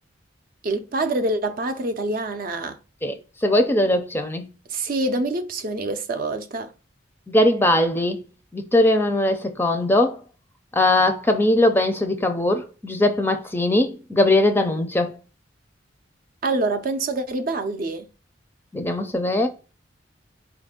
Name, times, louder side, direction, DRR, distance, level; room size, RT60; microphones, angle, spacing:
voice 1, 0.6-2.8 4.7-6.7 16.4-18.1, right 2 dB, 50° right, 0.5 m, -26 dB
voice 2, 3.4-4.5 7.3-8.2 8.5-10.2 10.7-15.1 18.7-19.5, left 1 dB, 10° left, 0.5 m, -20 dB
4.7 x 2.6 x 3.7 m
head